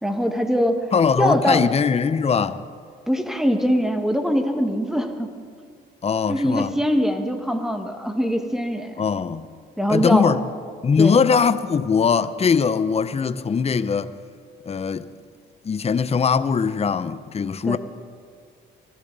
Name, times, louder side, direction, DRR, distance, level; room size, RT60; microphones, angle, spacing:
voice 1, 0.0-0.9 1.2-1.6 3.1-5.3 6.3-9.0 9.8-10.4 11.0-11.2 17.6-17.8, equal, ahead, 1.6 m, -22 dB
voice 2, 0.9-2.6 6.0-6.7 9.0-9.5 9.9-10.4 10.8-14.1 14.7-15.1 15.6-17.8, left 6 dB, 30° left, 0.7 m, -21 dB
24.0 x 14.5 x 4.0 m
cardioid pair, 90°, 20 cm